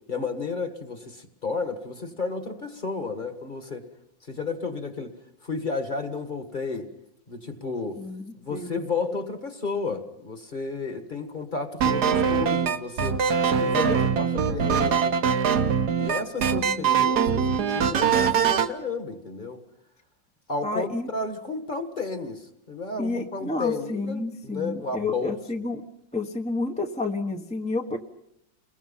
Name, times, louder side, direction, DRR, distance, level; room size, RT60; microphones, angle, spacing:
voice 1, 0.0-3.9 4.3-5.1 5.4-6.9 7.3-8.0 8.4-13.2 13.5-15.2 16.0-19.6 20.5-25.4, left 4 dB, 25° left, 8 dB, 1.7 m, -32 dB
voice 2, 8.0-8.8 16.6-17.0 20.6-21.1 23.0-25.8 26.1-28.0, left 3 dB, 5° left, 3 dB, 1.0 m, -30 dB
sound 1, 11.8-18.7, right 7 dB, 60° right, 1.6 m, -22 dB
30.0 x 22.0 x 5.7 m, 0.75 s
omnidirectional pair, 2.0 m